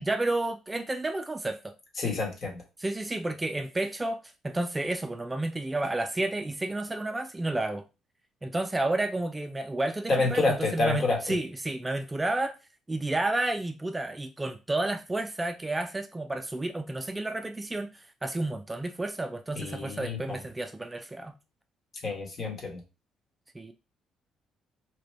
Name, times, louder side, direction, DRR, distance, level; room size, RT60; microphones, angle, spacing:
voice 1, 0.0-1.7 2.8-7.8 8.4-12.5 12.9-21.3 23.5-23.7, right 2 dB, 20° right, 0.4 m, -31 dB
voice 2, 2.0-2.6 10.1-11.3 19.5-20.4 22.0-22.8, left 3 dB, 50° left, 1.4 m, -28 dB
2.9 x 2.5 x 3.2 m
supercardioid pair, 65°, 0 cm